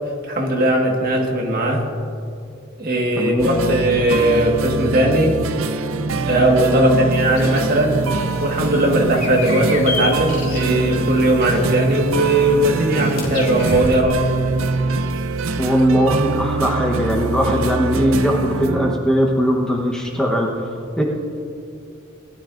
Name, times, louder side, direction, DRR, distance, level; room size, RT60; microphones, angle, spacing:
voice 1, 0.2-1.9 2.8-5.4 6.2-8.0 8.4-14.2, right 1 dB, 45° right, 0 dB, 1.6 m, -18 dB
voice 2, 3.2-3.5 6.7-6.9 15.6-20.5 21.0-21.1, equal, 5° left, -1 dB, 1.0 m, -19 dB
sound 1, 3.4-18.9, right 3 dB, 90° right, 0.5 m, -24 dB
sound 2, 7.2-13.9, left 2 dB, 45° left, 2.6 m, -32 dB
20.0 x 12.0 x 2.6 m, 2.5 s
head